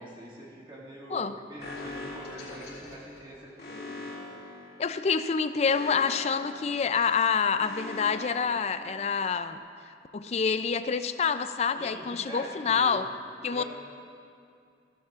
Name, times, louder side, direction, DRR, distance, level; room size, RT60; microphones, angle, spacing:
voice 1, 0.0-4.1 11.8-13.0 13.5-13.6, equal, 30° right, -7 dB, 2.2 m, -44 dB
Alarm, 1.6-9.4, left 2 dB, 60° left, 2.3 m, -42 dB
voice 2, 4.8-9.6 10.1-13.1 13.4-13.6, left 6 dB, 35° left, 11 dB, 0.4 m, -27 dB
15.0 x 14.0 x 2.5 m, 2.4 s
head